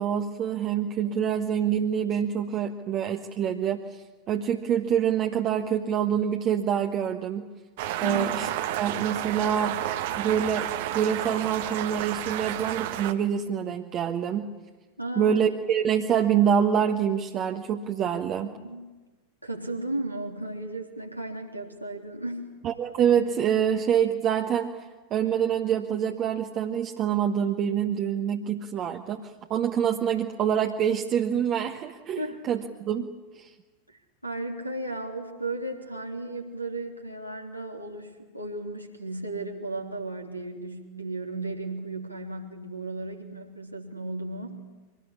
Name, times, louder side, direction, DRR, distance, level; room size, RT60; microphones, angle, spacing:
voice 1, 0.0-7.5 8.0-8.5 8.7-9.8 10.2-10.7 10.9-14.5 15.2-18.5 22.6-24.7 25.1-32.2 32.5-33.1 33.3-33.5, right 8 dB, 35° right, 3 dB, 1.4 m, -26 dB
sound 1, 7.8-13.1, right 12 dB, 50° right, 1.5 m, -31 dB
voice 2, 15.0-15.4 18.4-18.9 19.4-22.5 32.2-32.5 33.9-44.6, right 2 dB, 90° right, 1 dB, 3.3 m, -35 dB
24.5 x 19.5 x 10.0 m, 1.2 s
figure-of-eight pair, 90°, 0 cm